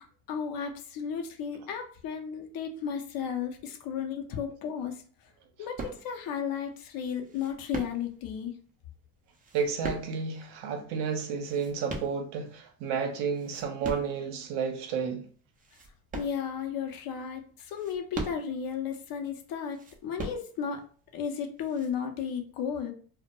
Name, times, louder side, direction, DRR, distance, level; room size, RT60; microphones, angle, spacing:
voice 1, 0.0-5.0 5.6-8.5 16.1-20.8 21.1-22.9, left 7 dB, 50° left, 0.6 m, -34 dB
sound 1, 5.8-6.4 7.2-8.3 9.3-10.5 11.2-12.6 13.1-14.2 14.8-14.9 15.5-16.9 17.6-18.8 19.7-20.8 21.6-21.9, right 3 dB, 20° right, 0.4 m, -40 dB
voice 2, 9.5-15.2, right 6 dB, 60° right, 0.7 m, -31 dB
2.1 x 2.1 x 2.9 m
supercardioid pair, 85°, 47 cm